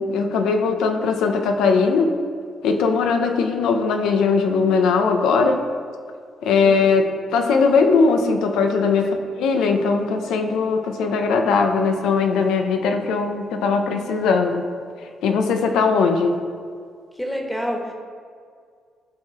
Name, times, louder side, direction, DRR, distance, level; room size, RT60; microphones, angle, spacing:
voice 1, 0.0-2.1 2.6-5.6 6.4-14.7 15.2-16.4, left 4 dB, 85° left, 5 dB, 0.9 m, -19 dB
voice 2, 6.6-7.0 9.0-9.1 17.2-17.9, equal, 5° left, 1 dB, 1.6 m, -28 dB
14.5 x 5.0 x 4.3 m, 2.1 s
cardioid pair, 90°, 0 cm